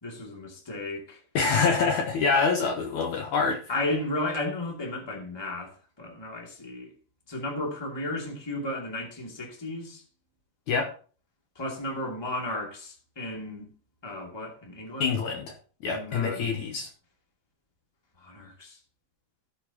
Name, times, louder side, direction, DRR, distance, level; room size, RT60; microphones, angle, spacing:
voice 1, 0.0-1.2 1.8-1.9 3.7-5.7 6.0-6.9 7.3-10.0 11.6-13.7 14.0-15.2 15.9-16.6 18.2-18.8, left 1 dB, 10° left, 2.1 m, -34 dB
voice 2, 1.4-3.6 10.7-10.9 15.0-15.5 15.8-16.9, left 5 dB, 65° left, 2.2 m, -25 dB
17.5 x 6.9 x 3.0 m
omnidirectional pair, 4.0 m